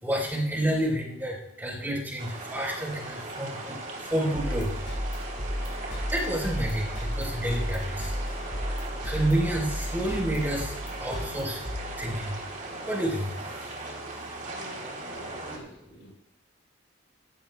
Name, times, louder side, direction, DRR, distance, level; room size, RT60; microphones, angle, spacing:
voice 1, 0.0-4.8 6.1-8.1 9.0-11.6 12.0-12.4 12.9-13.3, right 1 dB, 10° right, -2 dB, 3.9 m, -29 dB
sound 1, 2.2-15.6, right 2 dB, 45° right, 3.1 m, -38 dB
sound 2, 4.3-12.5, equal, 60° left, 5.2 m, -34 dB
voice 2, 14.5-16.1, equal, 80° left, -3 dB, 4.0 m, -46 dB
17.0 x 16.5 x 2.2 m, 0.85 s
head